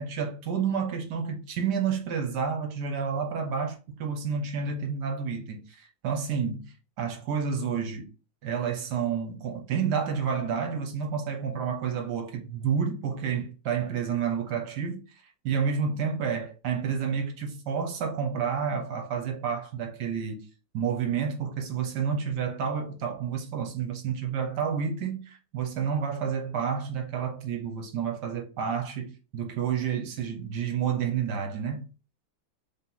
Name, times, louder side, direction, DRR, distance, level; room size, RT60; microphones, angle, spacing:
voice 1, 0.0-8.1 8.4-20.4 20.7-31.9, right 6 dB, 65° right, 1.3 m, -30 dB
3.6 x 2.9 x 3.8 m
omnidirectional pair, 2.2 m